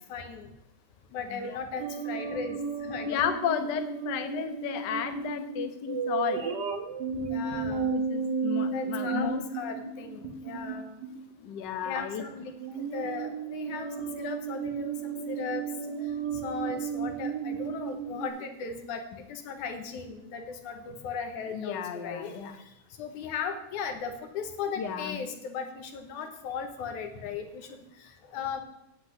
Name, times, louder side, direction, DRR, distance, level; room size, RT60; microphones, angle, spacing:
voice 1, 0.1-0.5 1.1-3.2 7.2-7.9 8.7-10.9 11.8-15.7 16.4-19.0 19.3-22.3 23.0-28.6, left 6 dB, 85° left, 6 dB, 2.7 m, -37 dB
sound 1, 1.8-11.2 11.9-12.3 12.6-18.3, right 5 dB, 65° right, 1.1 m, -33 dB
voice 2, 3.1-6.6 7.8-9.4 11.4-12.2 21.5-22.5 24.8-25.2, left 8 dB, 65° left, 7 dB, 1.1 m, -33 dB
8.1 x 8.1 x 8.3 m, 0.90 s
omnidirectional pair, 3.4 m